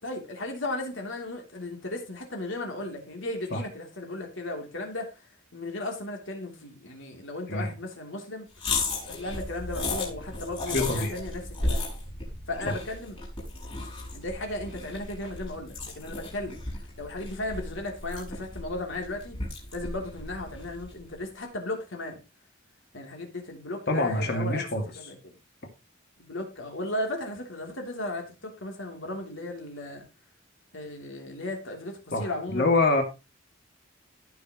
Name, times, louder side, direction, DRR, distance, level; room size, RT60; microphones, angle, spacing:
voice 1, 0.0-5.1 5.5-8.5 9.1-11.8 12.5-13.2 14.1-16.6 17.0-19.4 19.7-22.2 22.9-24.7 25.0-25.4 26.2-30.0 30.7-32.7, left 2 dB, 65° left, 2 dB, 3.3 m, -35 dB
sound 1, 8.6-21.0, left 2 dB, 25° left, 5.3 m, -35 dB
voice 2, 10.7-11.1 12.7-12.8 23.9-24.8 32.1-33.0, left 2 dB, 50° left, 4 dB, 2.4 m, -25 dB
15.5 x 6.3 x 3.1 m, 0.28 s
head